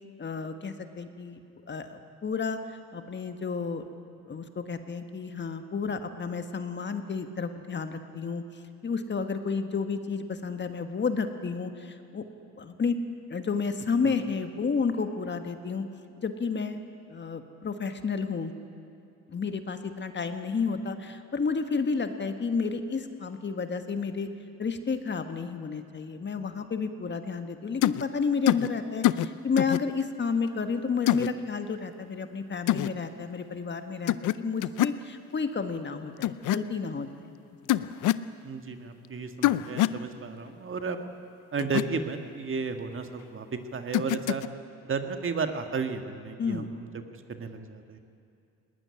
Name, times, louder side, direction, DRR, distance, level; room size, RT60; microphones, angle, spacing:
voice 1, 0.2-3.8 4.3-12.3 12.6-13.0 13.3-15.8 16.2-16.8 17.1-18.5 19.3-24.3 24.6-37.1 46.4-46.7, left 5 dB, 35° left, 8 dB, 1.6 m, -31 dB
sound 1, 27.8-28.0 28.5-28.7 29.0-29.3 29.6-29.8 31.1-31.3 32.7-32.9 34.1-34.4 34.6-35.0 36.2-36.6 37.7-38.3 39.4-40.0 41.6-41.8 43.9-44.5, left 14 dB, 85° left, 0.6 m, -24 dB
voice 2, 38.4-41.0 41.5-44.4 44.8-46.9 47.3-48.0, right 5 dB, 45° right, 6 dB, 1.9 m, -33 dB
20.0 x 18.5 x 10.0 m, 2.6 s
cardioid pair, 90°, 30 cm